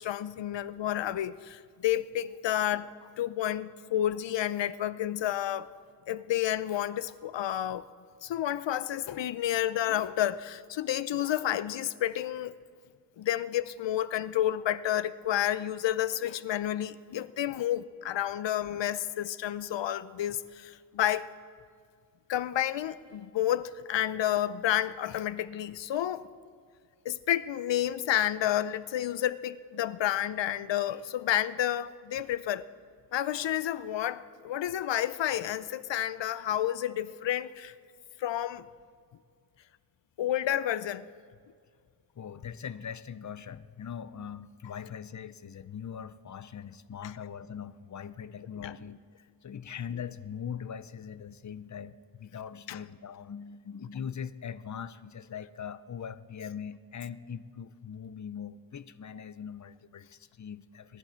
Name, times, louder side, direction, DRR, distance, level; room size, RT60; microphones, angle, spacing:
voice 1, 0.0-5.7 6.1-7.9 8.2-12.5 13.2-21.3 22.3-26.3 27.0-32.7 33.1-37.7 38.2-38.7 40.2-41.1 48.6-48.7 52.7-52.8, left 11 dB, 85° left, 0.6 m, -30 dB
voice 2, 42.2-61.0, left 7 dB, 45° left, 0.6 m, -41 dB
23.5 x 11.0 x 4.4 m
wide cardioid pair, 95°, 42 cm